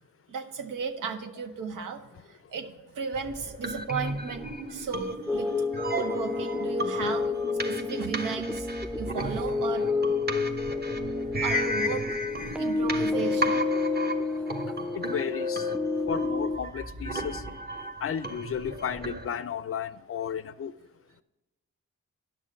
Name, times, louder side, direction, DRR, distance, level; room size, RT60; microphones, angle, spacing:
voice 1, 0.3-2.0 2.3-5.6 5.9-8.7 9.0-9.9 11.4-12.0 12.5-13.7 14.2-14.4, right 5 dB, 80° right, 5 dB, 0.8 m, -35 dB
sound 1, 3.1-19.3, right 1 dB, 30° right, 1.1 m, -35 dB
sound 2, 5.3-16.6, left 3 dB, 5° right, 0.5 m, -29 dB
voice 2, 14.9-15.7 16.1-17.4 18.0-20.7, left 8 dB, 45° left, 15 dB, 0.5 m, -33 dB
10.5 x 6.2 x 5.2 m, 1.1 s
supercardioid pair, 50°, 32 cm